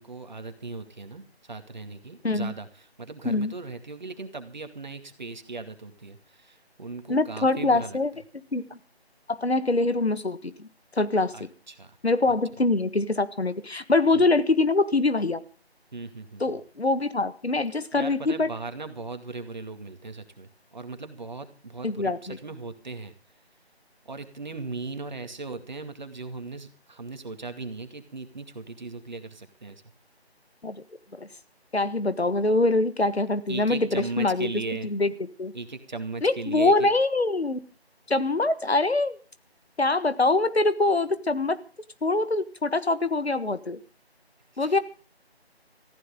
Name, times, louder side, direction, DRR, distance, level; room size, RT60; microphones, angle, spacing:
voice 1, 0.0-8.0 11.3-12.0 14.1-14.2 15.9-16.6 17.9-23.1 24.1-29.8 33.5-34.9 35.5-36.9 44.5-44.8, right 3 dB, 45° right, 8 dB, 2.2 m, -38 dB
voice 2, 7.1-8.1 8.5-8.8 9.3-10.7 11.0-11.3 12.0-15.4 16.4-18.5 21.8-22.4 30.6-30.7 31.2-31.3 31.7-34.5 34.8-35.1 35.4-35.5 36.2-37.6 38.1-39.2 39.8-41.6 42.0-43.8 44.6-44.8, left 2 dB, 75° left, 12 dB, 1.6 m, -24 dB
20.5 x 15.0 x 3.7 m, 0.36 s
figure-of-eight pair, 160°, 32 cm